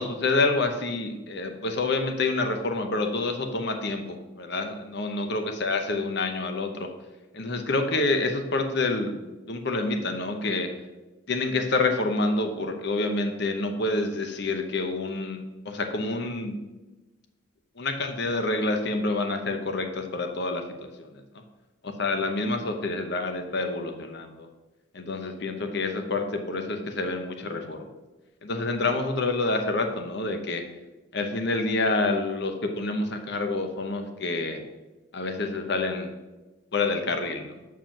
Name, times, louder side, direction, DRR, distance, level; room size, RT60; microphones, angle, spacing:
voice 1, 0.0-6.9 7.3-9.2 9.5-10.7 11.3-16.6 17.8-21.2 22.0-24.5 24.9-27.9 28.4-30.6 31.1-34.6 35.1-36.1 36.7-37.6, left 3 dB, 55° left, 6 dB, 0.8 m, -28 dB
7.5 x 4.8 x 5.9 m, 1.1 s
head